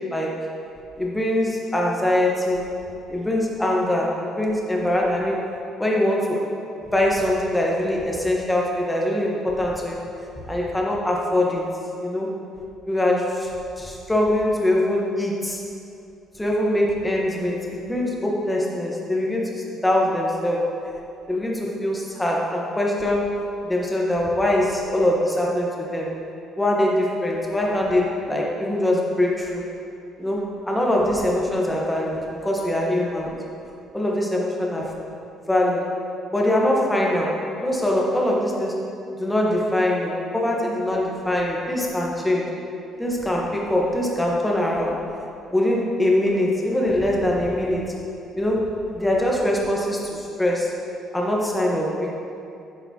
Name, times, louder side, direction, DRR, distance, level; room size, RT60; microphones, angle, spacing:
voice 1, 1.0-2.6 3.1-5.5 5.8-6.4 6.9-10.0 10.5-11.7 12.0-12.3 12.9-13.5 13.8-15.6 16.3-20.6 21.3-23.3 23.6-26.1 26.6-29.6 30.2-33.3 33.9-34.9 35.5-35.8 36.3-38.8 39.2-42.5 43.0-45.0 45.5-47.9 48.3-48.7 48.9-50.7 51.1-52.1, left 1 dB, 5° left, -2 dB, 1.1 m, -23 dB
10.0 x 7.0 x 2.8 m, 2.6 s
cardioid pair, 150°, 0 cm